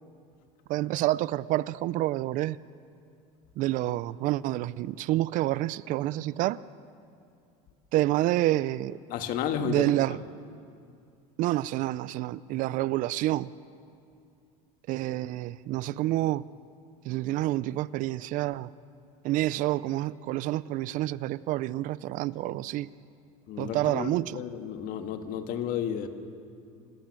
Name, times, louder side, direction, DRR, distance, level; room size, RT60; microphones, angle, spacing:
voice 1, 0.7-2.6 3.6-6.6 7.9-9.0 9.6-10.2 11.4-13.5 14.9-16.4 17.1-18.7 19.2-22.9 23.6-24.4, right 16 dB, 50° right, 0.5 m, -28 dB
voice 2, 9.1-9.9 23.5-26.1, left 8 dB, 55° left, 1.8 m, -32 dB
26.5 x 16.0 x 7.7 m
cardioid pair, 135°, 17 cm